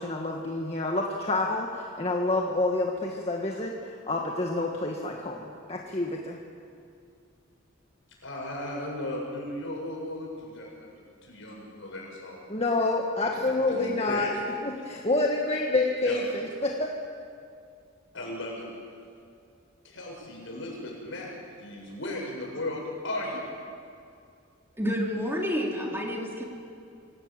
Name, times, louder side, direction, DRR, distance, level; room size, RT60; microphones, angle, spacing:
voice 1, 0.0-6.4 12.5-14.3 14.6-16.9, left 2 dB, 30° left, 0 dB, 1.7 m, -28 dB
voice 2, 8.2-12.4 13.2-14.4 16.0-16.2 18.1-18.6 19.8-21.3 21.6-23.5, left 1 dB, 65° left, -2 dB, 7.4 m, -36 dB
voice 3, 24.8-26.4, equal, 10° right, -1 dB, 2.9 m, -29 dB
25.0 x 17.5 x 9.0 m, 2.4 s
head